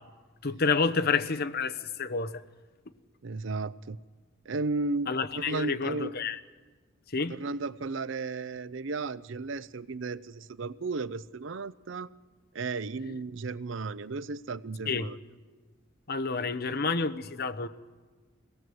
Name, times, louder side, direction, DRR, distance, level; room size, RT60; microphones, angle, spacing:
voice 1, 0.4-2.4 5.1-6.4 7.1-7.3 13.0-13.1 14.9-15.1 16.1-17.7, left 4 dB, 50° left, 10 dB, 0.9 m, -29 dB
voice 2, 3.2-4.0 4.5-6.2 7.3-12.1 12.5-15.2, right 3 dB, 65° right, 17 dB, 0.6 m, -34 dB
23.0 x 18.0 x 7.7 m, 1.4 s
head